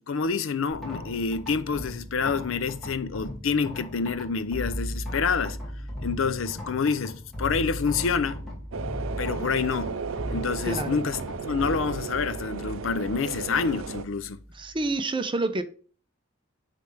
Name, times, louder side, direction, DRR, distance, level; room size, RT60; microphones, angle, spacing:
voice 1, 0.0-5.6 6.0-8.4 9.2-9.9 10.3-11.2 11.4-14.4, left 5 dB, 70° left, 0.5 m, -27 dB
sound 1, 0.7-15.0, left 1 dB, ahead, 2.3 m, -37 dB
S-Bahn Berlin - Train arrives at station and departs, 8.7-14.0, right 5 dB, 75° right, 0.5 m, -35 dB
voice 2, 10.6-11.0 14.5-15.6, right 2 dB, 25° right, 0.6 m, -28 dB
9.4 x 3.3 x 3.3 m
head